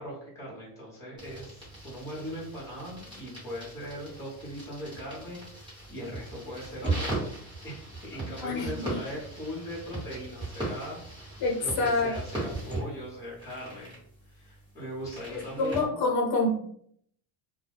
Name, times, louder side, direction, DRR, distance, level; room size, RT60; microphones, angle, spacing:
voice 1, 0.0-7.2 7.6-13.9 14.3-15.9, equal, 5° left, -6 dB, 0.9 m, -40 dB
sound 1, 1.2-15.9, right 2 dB, 10° right, 1.1 m, -38 dB
voice 2, 8.4-8.9 11.4-12.1 15.3-16.6, left 2 dB, 55° left, 0 dB, 0.9 m, -27 dB
2.2 x 2.1 x 3.4 m, 0.64 s
cardioid pair, 150°, 44 cm